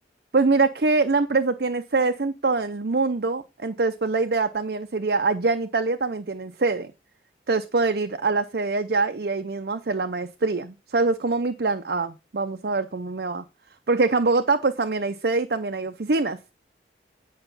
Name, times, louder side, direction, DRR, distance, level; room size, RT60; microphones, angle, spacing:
voice 1, 0.3-6.9 7.5-13.4 13.9-16.5, right 3 dB, 60° right, 8 dB, 0.6 m, -24 dB
9.0 x 5.6 x 5.5 m, 0.28 s
head